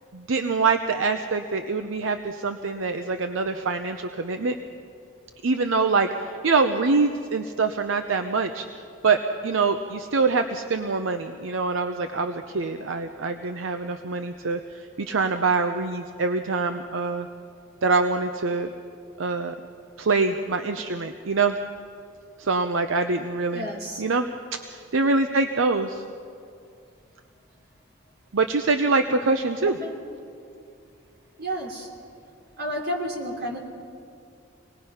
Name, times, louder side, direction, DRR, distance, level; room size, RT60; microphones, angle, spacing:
voice 1, 0.1-4.6 5.4-8.6 9.0-17.3 17.8-18.7 19.2-19.5 20.0-21.6 22.4-23.7 24.0-26.0 28.3-29.8, right 4 dB, 75° right, 7 dB, 0.7 m, -24 dB
voice 2, 23.5-24.0 29.6-30.1 31.4-31.9 32.6-33.6, equal, 55° right, 0 dB, 3.0 m, -31 dB
25.5 x 19.5 x 5.6 m, 2.4 s
head